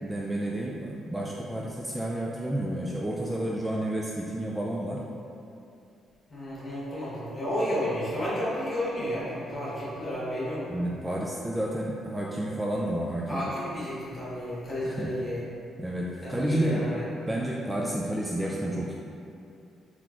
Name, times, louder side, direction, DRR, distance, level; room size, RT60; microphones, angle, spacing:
voice 1, 0.0-5.0 10.7-13.4 14.8-15.1 15.8-16.9 17.3-18.9, right 1 dB, 10° right, -4 dB, 0.3 m, -30 dB
voice 2, 6.3-10.7 13.3-15.4 16.2-17.1, equal, 35° left, -9 dB, 1.4 m, -32 dB
3.8 x 2.9 x 2.5 m, 2.6 s
cardioid pair, 90°, 0 cm